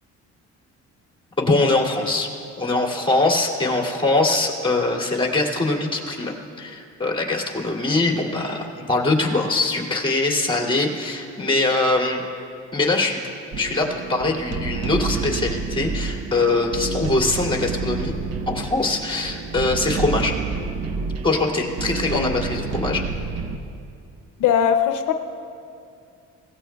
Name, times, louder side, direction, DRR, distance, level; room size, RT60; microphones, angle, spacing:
voice 1, 1.4-2.3 2.6-12.2 12.7-13.2 13.6-18.1 18.5-20.3 21.2-23.0, left 2 dB, 15° left, -1 dB, 2.6 m, -22 dB
sound 1, 13.5-23.6, right 4 dB, 55° right, 0.9 m, -29 dB
voice 2, 24.4-25.1, left 8 dB, 85° left, 7 dB, 0.7 m, -20 dB
22.0 x 17.0 x 2.3 m, 2.5 s
cardioid pair, 90°, 30 cm